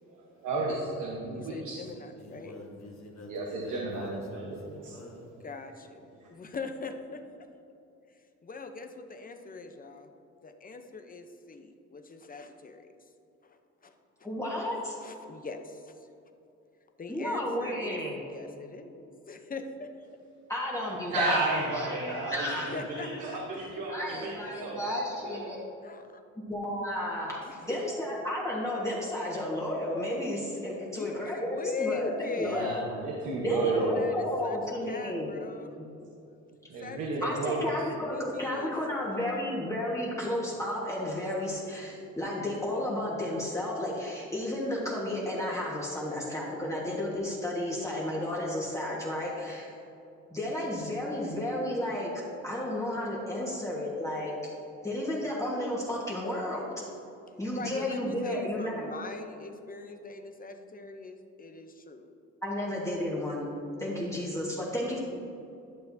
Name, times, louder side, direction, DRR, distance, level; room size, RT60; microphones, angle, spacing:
voice 1, 0.4-1.8 3.3-4.9 6.2-6.3 21.1-22.5 22.9-24.3 24.6-24.8 25.2-25.4 32.5-34.1 36.7-37.6, right 3 dB, 85° right, -3 dB, 1.2 m, -32 dB
voice 2, 1.3-2.5 5.4-7.2 8.1-10.1 10.4-12.9 13.4-13.9 15.0-16.1 17.0-18.0 18.3-19.9 22.5-23.4 25.8-26.2 27.4-27.8 30.9-32.8 33.4-34.6 34.8-35.8 36.7-38.7 39.1-39.5 57.5-62.1, left 4 dB, 30° left, 6 dB, 0.7 m, -41 dB
voice 3, 1.8-5.3, left 2 dB, 65° left, -2 dB, 1.4 m, -47 dB
voice 4, 14.2-14.9 17.1-18.2 20.5-22.7 23.9-25.6 26.4-31.5 31.8-32.7 33.4-35.3 35.8-35.9 37.2-49.7 50.3-52.1 52.4-54.3 54.8-56.6 57.4-58.8 62.4-63.4 63.8-65.0, left 1 dB, 10° left, -6 dB, 1.4 m, -32 dB
11.5 x 6.5 x 2.7 m, 2.7 s
cardioid pair, 90°, 30 cm